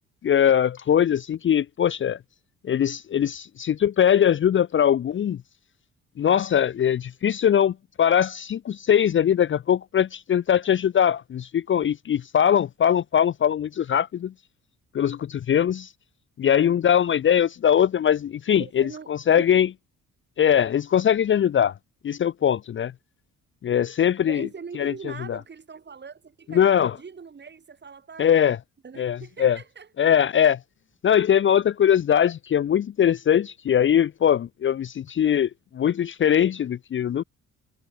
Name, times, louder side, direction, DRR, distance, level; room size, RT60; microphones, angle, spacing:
voice 1, 0.2-2.2 2.6-5.4 6.2-14.3 14.9-15.9 16.4-19.7 20.4-21.7 22.0-22.9 23.6-24.5 24.8-25.4 26.5-27.0 28.2-28.6 29.0-29.6 30.0-30.6 31.0-37.2, left 9 dB, 40° left, 0.6 m, -21 dB
voice 2, 18.5-19.5 24.2-28.6 28.8-29.9, right 5 dB, 35° right, 3.2 m, -42 dB
cardioid pair, 90°, 30 cm